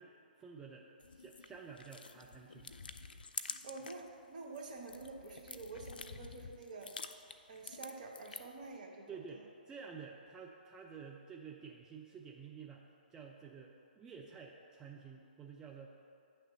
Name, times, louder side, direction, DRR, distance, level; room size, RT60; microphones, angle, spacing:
voice 1, 0.0-2.7 9.1-12.8 13.1-15.9, right 6 dB, 15° right, -1 dB, 0.4 m, -51 dB
sound 1, 1.0-4.1 4.4-8.6, left 4 dB, 70° left, 0.4 m, -48 dB
voice 2, 3.6-6.9 7.5-9.4, right 3 dB, 55° right, 0 dB, 1.0 m, -48 dB
8.9 x 3.3 x 6.3 m, 2.5 s
figure-of-eight pair, 125°, 5 cm